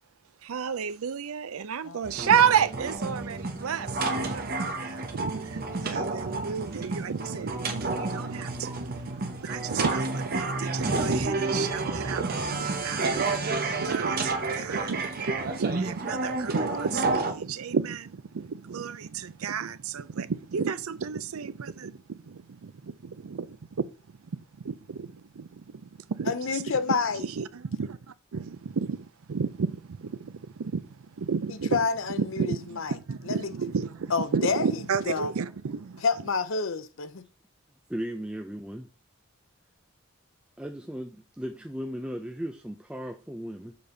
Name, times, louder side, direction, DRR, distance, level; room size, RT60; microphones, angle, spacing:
voice 1, 0.4-28.0 28.3-31.8 32.2-36.0, right 6 dB, 75° right, 0.5 m, -32 dB
sound 1, 2.0-17.3, right 3 dB, 45° right, 1.1 m, -30 dB
voice 2, 26.3-27.2 31.7-32.9 33.3-33.5 34.1-34.7 35.1-35.3 36.0-37.3, left 5 dB, 60° left, 0.6 m, -28 dB
voice 3, 37.9-38.9 40.6-43.8, equal, 5° right, 0.4 m, -36 dB
6.9 x 5.2 x 3.9 m
head